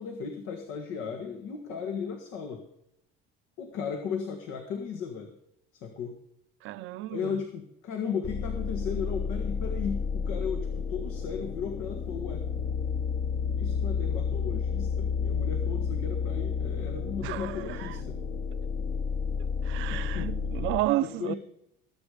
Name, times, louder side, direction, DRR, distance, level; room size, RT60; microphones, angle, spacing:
voice 1, 0.0-2.6 3.6-5.3 5.7-6.2 7.1-12.4 13.6-18.2 19.9-20.4 21.0-21.4, left 6 dB, 80° left, 1.6 m, -36 dB
voice 2, 6.6-7.3 17.2-17.9 19.6-21.4, right 16 dB, 70° right, 0.7 m, -31 dB
sound 1, 8.2-20.8, left 6 dB, 45° left, 1.1 m, -31 dB
19.5 x 8.2 x 5.0 m
cardioid pair, 105°, 21 cm